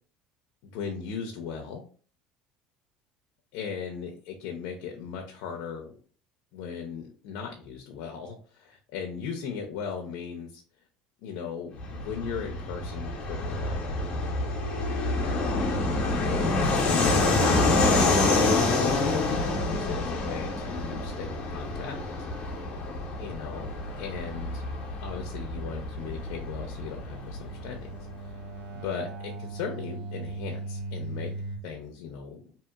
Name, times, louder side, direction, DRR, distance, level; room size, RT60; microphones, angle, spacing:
voice 1, 0.6-1.8 3.5-6.0 6.5-10.6 11.2-14.0 15.1-15.5 16.2-22.3 23.2-24.6 25.0-28.0 28.2-28.4 28.7-31.3 31.6-32.6, left 6 dB, 75° left, 2 dB, 0.5 m, -38 dB
Fixed-wing aircraft airplane, 11.8-28.0, left 2 dB, 40° left, 0.8 m, -27 dB
sound 1, 14.0-31.6, right 1 dB, 60° right, 1.0 m, -42 dB
2.8 x 2.8 x 2.3 m, 0.42 s
cardioid pair, 140°, 3 cm